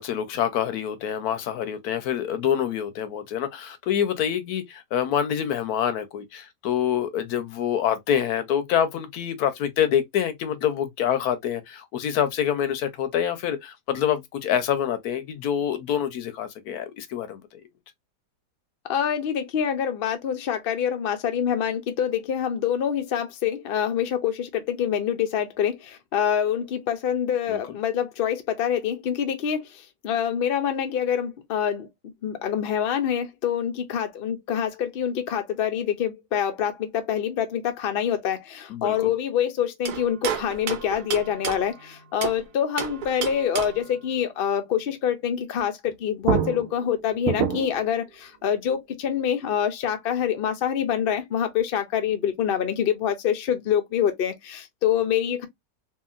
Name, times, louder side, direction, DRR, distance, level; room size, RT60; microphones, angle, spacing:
voice 1, 0.0-17.4 27.5-27.8 38.7-39.1, left 9 dB, 75° left, 1.1 m, -26 dB
voice 2, 18.9-25.7 26.1-29.6 30.0-31.9 32.2-55.5, left 9 dB, 55° left, 0.6 m, -26 dB
sound 1, 39.8-42.4 42.8-43.9 45.9-46.0 46.2-47.9, right 8 dB, 75° right, 1.2 m, -29 dB
2.8 x 2.8 x 2.4 m
omnidirectional pair, 1.7 m